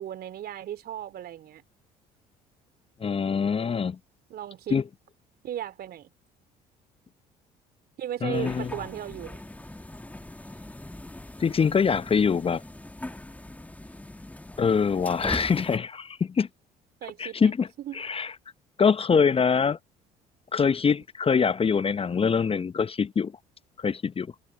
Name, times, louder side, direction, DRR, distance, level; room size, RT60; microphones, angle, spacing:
voice 1, 0.0-1.6 4.3-4.8 5.4-6.1 8.0-9.4 17.0-17.5 17.8-18.0, right 11 dB, 55° right, 3.0 m, -36 dB
voice 2, 3.0-4.0 4.7-4.8 8.2-8.7 11.4-12.6 14.6-16.5 17.2-17.7 17.9-18.3 18.8-19.8 20.5-23.3 23.8-24.3, left 6 dB, 30° left, 0.9 m, -24 dB
sound 1, 8.3-15.8, left 1 dB, 5° left, 1.7 m, -40 dB
hypercardioid pair, 55°, 20 cm